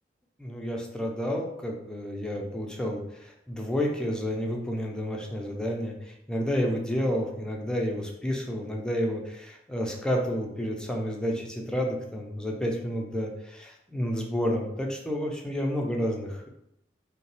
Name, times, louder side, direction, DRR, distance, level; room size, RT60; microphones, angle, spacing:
voice 1, 0.4-5.9 6.3-16.5, equal, 5° left, -1 dB, 0.6 m, -30 dB
5.2 x 2.2 x 3.3 m, 0.77 s
head